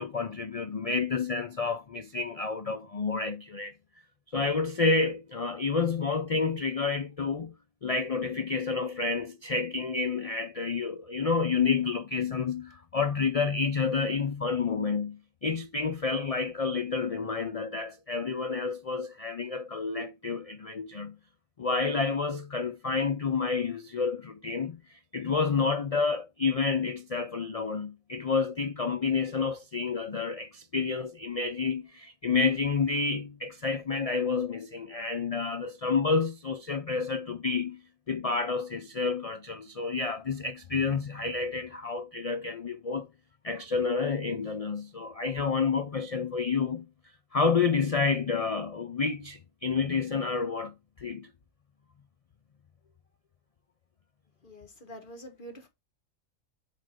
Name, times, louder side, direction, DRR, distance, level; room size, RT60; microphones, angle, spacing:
voice 1, 0.0-3.7 4.3-7.5 7.8-21.2 21.6-37.8 38.1-43.1 43.4-46.9 47.3-51.3, left 4 dB, 60° left, 0.3 m, -29 dB
voice 2, 54.4-55.7, equal, 40° left, 1.5 m, -46 dB
7.7 x 3.4 x 5.0 m
omnidirectional pair, 1.4 m